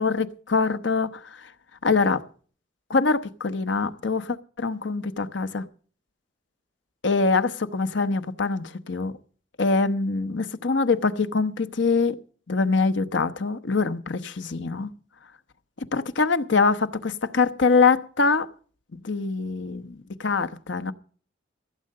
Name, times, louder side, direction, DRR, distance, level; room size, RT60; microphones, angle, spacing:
voice 1, 0.0-1.5 1.8-2.2 2.9-5.6 7.0-9.1 9.6-12.2 12.5-14.9 15.9-18.5 18.9-20.9, left 4 dB, 70° left, 0.9 m, -24 dB
15.5 x 7.8 x 6.5 m
head